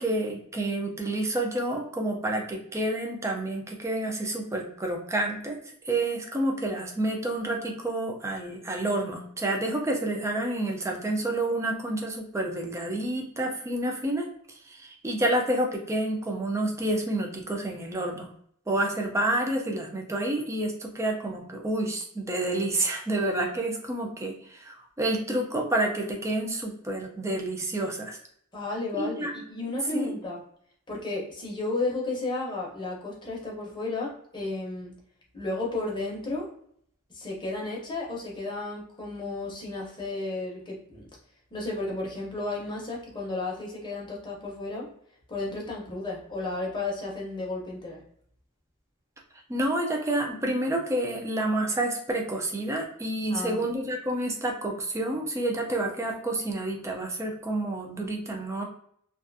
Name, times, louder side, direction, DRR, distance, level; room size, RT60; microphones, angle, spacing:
voice 1, 0.0-5.6 5.8-18.3 18.7-28.2 28.9-29.3 29.9-30.1 49.5-58.6, right 1 dB, 15° right, 1 dB, 0.4 m, -29 dB
voice 2, 28.5-30.4 30.9-34.9 35.3-36.4 37.1-41.1 41.5-44.8 45.3-48.0 53.3-53.6, left 2 dB, 20° left, -3 dB, 0.7 m, -33 dB
2.4 x 2.3 x 2.5 m, 0.65 s
head